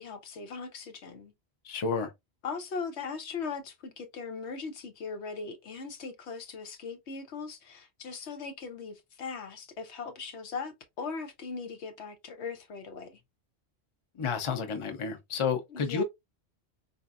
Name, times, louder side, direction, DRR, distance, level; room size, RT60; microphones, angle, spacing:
voice 1, 0.0-1.3 2.4-13.2 15.7-16.0, left 5 dB, 90° left, 1.1 m, -39 dB
voice 2, 1.6-2.1 14.2-16.0, left 5 dB, 35° left, 0.6 m, -30 dB
4.2 x 2.6 x 2.4 m
omnidirectional pair, 1.1 m